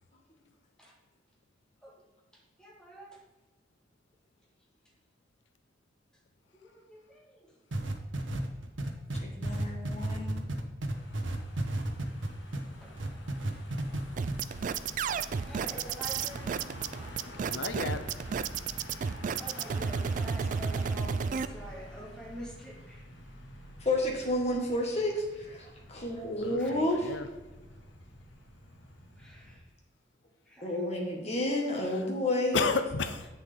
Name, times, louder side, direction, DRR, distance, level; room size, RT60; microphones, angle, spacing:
voice 1, 2.3-3.2 6.5-7.5 9.6-9.7 12.8-12.9 14.5-14.6 15.4-16.6 19.4-23.0 26.6-26.7 29.2-29.6 30.5-30.8, equal, 5° left, -3 dB, 1.7 m, -47 dB
sound 1, 7.7-12.6 13.0-14.0 14.3-14.4, right 1 dB, 80° right, 0.9 m, -32 dB
voice 2, 9.1-10.4 23.8-27.1 30.6-32.6, left 1 dB, 35° left, -1 dB, 1.6 m, -31 dB
Car passing by / Engine, 10.9-29.6, left 1 dB, 90° left, 1.6 m, -48 dB
sound 2, 14.2-21.5, right 6 dB, 45° right, 0.3 m, -32 dB
voice 3, 17.5-18.1 26.4-27.3 32.5-33.3, left 4 dB, 70° left, 10 dB, 0.7 m, -31 dB
8.1 x 6.8 x 3.7 m, 1.2 s
head